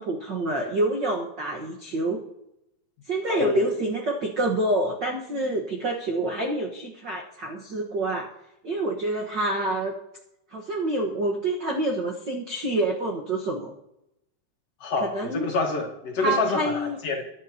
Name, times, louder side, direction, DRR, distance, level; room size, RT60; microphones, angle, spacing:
voice 1, 0.0-2.2 3.1-8.3 8.6-9.9 10.5-13.7 15.0-15.5 16.2-17.0, right 2 dB, 55° right, 0 dB, 1.2 m, -27 dB
voice 2, 3.3-3.6 14.8-17.2, left 4 dB, 50° left, 1 dB, 2.5 m, -27 dB
22.5 x 11.0 x 2.9 m, 0.86 s
omnidirectional pair, 4.0 m